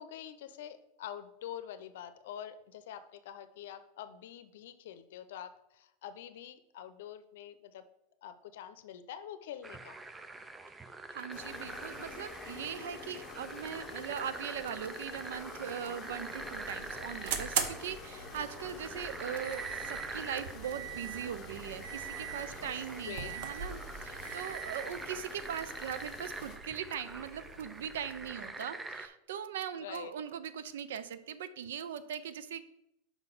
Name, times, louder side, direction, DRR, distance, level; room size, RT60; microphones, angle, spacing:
voice 1, 0.0-7.8 8.2-10.0 19.2-19.4 22.3-23.7 24.2-24.5 24.8-25.0 28.4-28.5 29.8-30.1, left 10 dB, 75° left, 11 dB, 0.6 m, -46 dB
sound 1, 9.6-29.1, right 3 dB, 10° right, 0.4 m, -45 dB
voice 2, 11.1-32.7, right 8 dB, 85° right, 14 dB, 0.5 m, -40 dB
sound 2, 11.3-26.6, left 6 dB, 30° left, 0.9 m, -49 dB
sound 3, 16.1-28.5, right 7 dB, 65° right, 0.8 m, -42 dB
5.4 x 3.9 x 6.0 m, 0.81 s
supercardioid pair, 140°, 0 cm